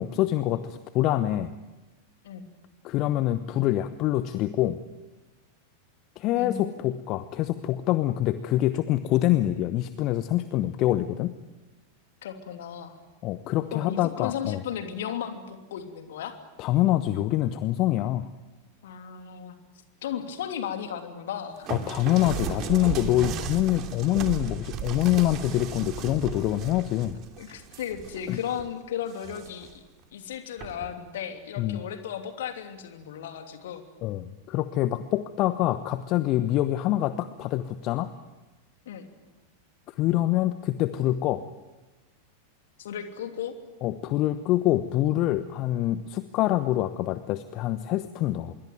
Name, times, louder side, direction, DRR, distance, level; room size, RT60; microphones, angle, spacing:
voice 1, 0.0-1.5 2.8-4.8 6.2-11.3 13.2-14.6 16.6-18.3 21.7-27.2 28.3-28.4 31.6-31.8 34.0-38.1 40.0-41.4 43.8-48.5, left 14 dB, 40° left, 13 dB, 1.0 m, -25 dB
voice 2, 6.4-6.9 12.2-13.0 13.7-16.3 18.8-19.5 20.0-21.7 27.4-29.7 30.1-33.8 38.9-39.1 42.8-43.5, left 9 dB, 60° left, 7 dB, 2.9 m, -35 dB
sound 1, 21.7-28.6 29.1-29.7 30.6-30.9, right 8 dB, 35° right, 2.7 m, -35 dB
26.0 x 22.5 x 9.3 m, 1.2 s
figure-of-eight pair, 90°, 0 cm